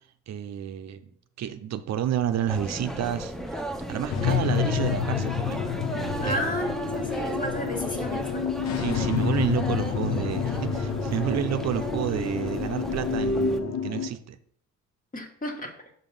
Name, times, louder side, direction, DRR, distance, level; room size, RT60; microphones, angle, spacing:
voice 1, 0.3-1.1 1.4-3.3 3.9-5.6 5.9-6.4 8.8-14.4, right 9 dB, 60° right, 10 dB, 0.6 m, -30 dB
sound 1, 2.5-13.6, right 1 dB, ahead, 0.7 m, -34 dB
sound 2, 4.1-14.1, left 7 dB, 60° left, 0.8 m, -29 dB
voice 2, 6.2-8.5 15.1-15.7, equal, 25° left, 4 dB, 1.6 m, -32 dB
5.7 x 5.2 x 5.4 m, 0.65 s
cardioid pair, 90°, 30 cm